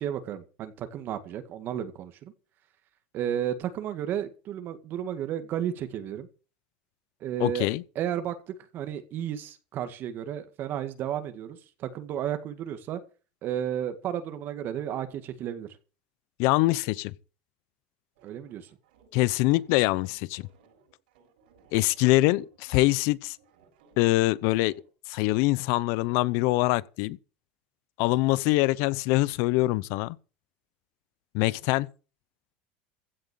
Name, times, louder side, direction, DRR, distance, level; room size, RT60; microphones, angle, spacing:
voice 1, 0.0-2.3 3.1-6.3 7.2-7.7 8.0-13.0 13.4-15.7 18.2-18.7, right 10 dB, 45° right, 1.9 m, -33 dB
voice 2, 7.4-7.8 16.4-17.1 19.1-20.5 21.7-23.4 24.0-24.7 25.1-27.2 28.0-30.2 31.3-31.9, left 20 dB, 65° left, 0.8 m, -24 dB
sound 1, 18.1-24.9, right 5 dB, 90° right, 7.3 m, -62 dB
16.0 x 7.7 x 7.1 m
supercardioid pair, 135°, 5 cm